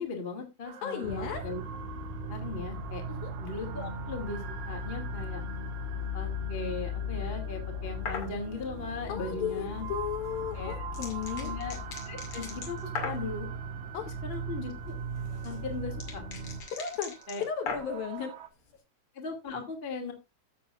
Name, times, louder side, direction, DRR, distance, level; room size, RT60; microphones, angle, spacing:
voice 1, 0.0-1.6 2.3-3.0 3.4-5.4 6.1-9.9 10.5-10.8 11.4-11.8 12.0-13.5 14.2-15.0 15.4-16.2 17.3-17.4 19.1-20.1, left 3 dB, 90° left, 0.5 m, -38 dB
sound 1, 0.6-18.5, right 9 dB, 80° right, 2.0 m, -46 dB
voice 2, 0.8-1.4 3.2-3.3 9.1-11.5 13.9-14.1 16.7-17.1 17.4-18.3, left 8 dB, 70° left, 2.3 m, -35 dB
sound 2, 1.0-16.6, left 1 dB, 60° right, 1.9 m, -38 dB
sound 3, 8.0-8.3 10.2-13.3 14.9-18.1, left 5 dB, 40° left, 2.1 m, -39 dB
15.0 x 6.9 x 2.4 m
omnidirectional pair, 5.4 m